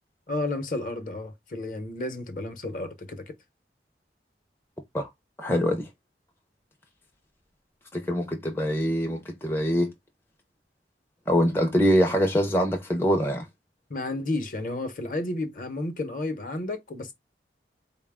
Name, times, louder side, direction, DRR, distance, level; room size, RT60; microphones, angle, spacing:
voice 1, 0.3-3.3 13.9-17.1, left 2 dB, 50° left, 0.8 m, -32 dB
voice 2, 5.4-5.9 7.9-9.9 11.3-13.5, equal, 15° left, 0.4 m, -24 dB
4.0 x 2.2 x 3.5 m
head